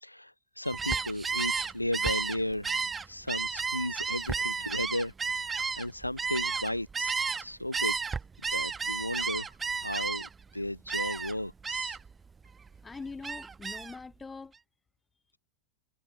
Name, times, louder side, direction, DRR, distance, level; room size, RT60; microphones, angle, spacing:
voice 1, 0.0-8.0 8.5-12.0, left 1 dB, 85° left, 0.4 m, -35 dB
Gull seagull, 0.6-7.4 7.7-10.4 10.9-11.3 11.6-12.1 12.5-14.0, right 5 dB, 15° right, 0.4 m, -32 dB
voice 2, 12.8-14.5, left 4 dB, 10° left, 1.5 m, -42 dB
figure-of-eight pair, 90°, 0 cm